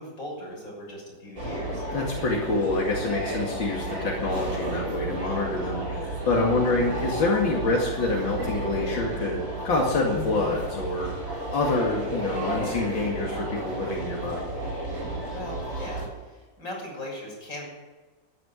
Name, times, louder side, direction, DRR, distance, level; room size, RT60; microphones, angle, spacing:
voice 1, 0.0-1.9 15.3-17.6, left 1 dB, 45° left, -3 dB, 7.0 m, -39 dB
sound 1, 1.4-16.1, right 1 dB, 40° right, 6.5 m, -32 dB
voice 2, 1.9-14.4, left 3 dB, 85° left, -2 dB, 3.0 m, -27 dB
13.5 x 11.0 x 9.6 m, 1.3 s
omnidirectional pair, 2.0 m